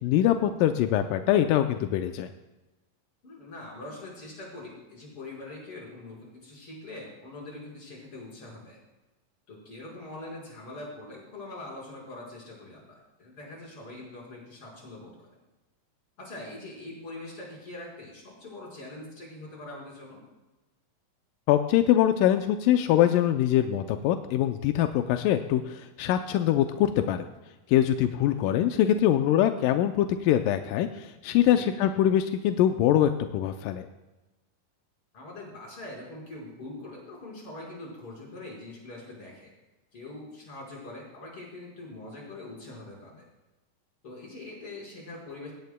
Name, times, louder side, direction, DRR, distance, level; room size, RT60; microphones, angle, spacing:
voice 1, 0.0-2.3 21.5-27.3 27.7-33.9, left 11 dB, 90° left, 7 dB, 2.2 m, -23 dB
voice 2, 3.2-8.8 9.5-15.4 16.2-20.2 28.2-28.8 31.5-31.7 35.1-39.5 39.9-43.3 44.0-45.5, left 2 dB, 40° left, -3 dB, 5.7 m, -43 dB
19.5 x 16.5 x 2.2 m, 1.1 s
omnidirectional pair, 3.7 m